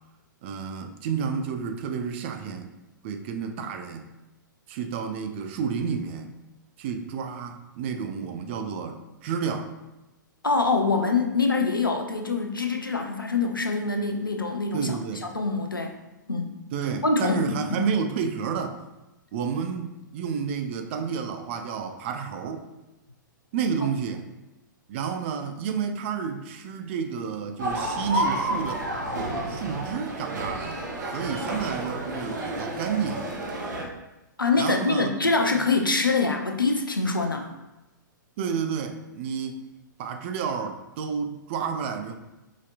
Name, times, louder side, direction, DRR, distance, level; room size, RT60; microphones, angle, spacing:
voice 1, 0.4-2.7 3.0-4.1 4.7-6.3 6.8-9.7 14.7-15.3 16.7-18.8 19.3-22.6 23.5-24.2 24.9-28.9 29.5-30.8 31.1-33.3 34.6-35.3 38.4-39.6 40.0-42.2, right 6 dB, 35° right, 6 dB, 0.4 m, -30 dB
voice 2, 10.4-15.0 15.3-15.9 16.3-16.5 17.0-17.8 34.4-37.5, left 3 dB, 85° left, 4 dB, 0.5 m, -24 dB
sound 1, 27.6-33.8, right 1 dB, 60° right, 0.8 m, -30 dB
4.9 x 2.8 x 2.4 m, 1.0 s
figure-of-eight pair, 110°, 11 cm